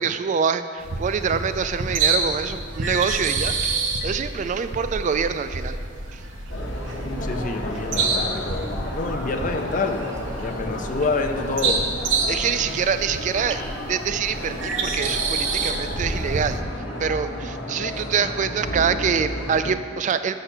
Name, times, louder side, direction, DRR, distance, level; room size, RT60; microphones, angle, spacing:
voice 1, 0.0-5.8 6.1-6.2 12.3-16.6 17.0-20.4, right 6 dB, 40° right, 11 dB, 0.3 m, -25 dB
sound 1, 0.8-16.6, right 3 dB, 75° right, 0.8 m, -28 dB
sound 2, 6.5-19.7, left 1 dB, 70° left, 1.1 m, -32 dB
voice 2, 7.2-10.0 10.4-11.8, left 3 dB, 45° left, 5 dB, 0.5 m, -27 dB
6.5 x 5.5 x 5.9 m, 2.2 s
head